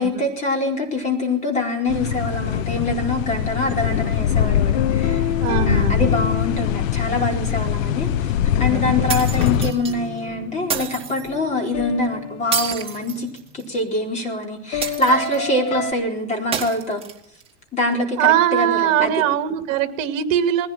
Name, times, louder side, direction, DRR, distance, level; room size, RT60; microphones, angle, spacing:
voice 1, 0.0-5.3 5.7-8.3 8.6-17.0 17.7-19.1, left 2 dB, 20° left, 2 dB, 4.4 m, -24 dB
sound 1, 1.9-9.7, left 10 dB, 90° left, 1.2 m, -22 dB
sound 2, 4.7-7.6 8.9-13.5 14.7-15.9, left 5 dB, 70° left, 4.4 m, -31 dB
voice 2, 5.4-6.1 8.7-9.2 18.2-20.7, right 11 dB, 50° right, 7 dB, 2.8 m, -21 dB
sound 3, 9.1-9.9 10.7-11.3 12.5-13.7 14.8-15.5 16.5-17.5, right 7 dB, 15° right, 2.8 m, -28 dB
20.5 x 16.5 x 8.9 m, 0.75 s
supercardioid pair, 160°, 38 cm